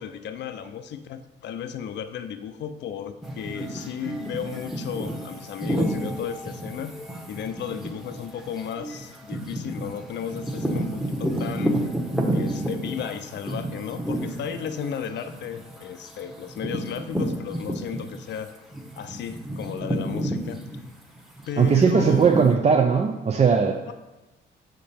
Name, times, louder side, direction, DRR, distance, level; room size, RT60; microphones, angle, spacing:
voice 1, 0.0-7.0 7.3-11.8 12.3-18.5 19.0-20.6 21.5-22.3 23.9-24.0, left 8 dB, 60° left, 10 dB, 0.5 m, -34 dB
sound 1, 3.2-18.4 18.7-22.5, right 1 dB, ahead, 1.0 m, -31 dB
voice 2, 21.6-23.9, right 6 dB, 35° right, 3 dB, 0.5 m, -19 dB
6.4 x 5.2 x 4.3 m, 1.0 s
cardioid pair, 90°, 20 cm